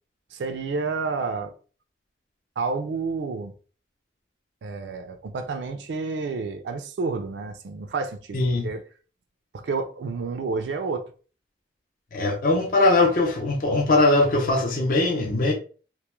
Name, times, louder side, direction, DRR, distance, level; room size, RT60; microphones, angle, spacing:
voice 1, 0.3-1.5 2.6-3.5 4.6-8.8 9.5-11.0, right 4 dB, 75° right, 0.3 m, -30 dB
voice 2, 8.3-8.7 12.1-15.5, left 2 dB, 50° left, 0.5 m, -21 dB
2.2 x 2.1 x 3.0 m
head